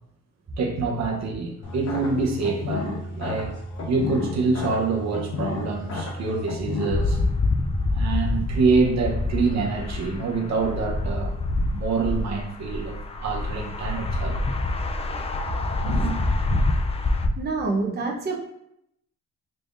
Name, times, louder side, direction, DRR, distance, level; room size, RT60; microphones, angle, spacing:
voice 1, 0.6-3.5 3.9-7.2 7.9-11.4 11.7-14.4 15.8-16.1, right 4 dB, 60° right, 1 dB, 0.8 m, -26 dB
sound 1, 1.6-6.9, left 2 dB, 55° left, 1.0 m, -32 dB
sound 2, 6.9-17.3, left 2 dB, 20° left, 0.3 m, -26 dB
voice 2, 17.4-18.4, right 3 dB, 35° right, -1 dB, 0.8 m, -26 dB
3.7 x 3.4 x 2.5 m, 0.76 s
cardioid pair, 90°, 30 cm